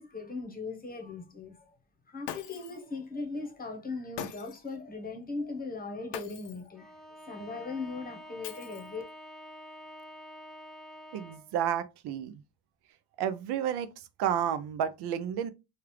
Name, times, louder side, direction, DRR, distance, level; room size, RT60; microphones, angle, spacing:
voice 1, 0.0-1.8 2.1-7.0 7.3-9.0, left 3 dB, 20° left, 0.9 m, -39 dB
Shatter, 2.3-2.9 4.2-4.7 6.1-6.7 8.4-9.1, left 10 dB, 80° left, 0.6 m, -42 dB
Bowed string instrument, 6.8-11.6, equal, ahead, 0.4 m, -48 dB
voice 2, 11.1-12.3 13.2-13.9 14.2-15.5, right 9 dB, 70° right, 0.5 m, -31 dB
3.2 x 2.4 x 3.0 m
cardioid pair, 120°, 41 cm